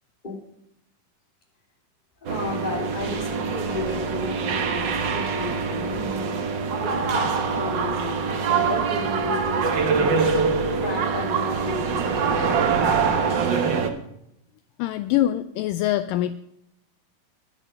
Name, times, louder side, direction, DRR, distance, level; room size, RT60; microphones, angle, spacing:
voice 1, 2.2-6.5 6.8-8.2 8.4-10.4 10.8-13.5, left 3 dB, 15° left, -1 dB, 2.8 m, -33 dB
sound 1, 2.2-13.9, right 5 dB, 90° right, 0.9 m, -24 dB
voice 2, 14.8-16.4, left 13 dB, 80° left, 12 dB, 2.1 m, -24 dB
11.0 x 10.5 x 5.2 m, 0.76 s
omnidirectional pair, 4.1 m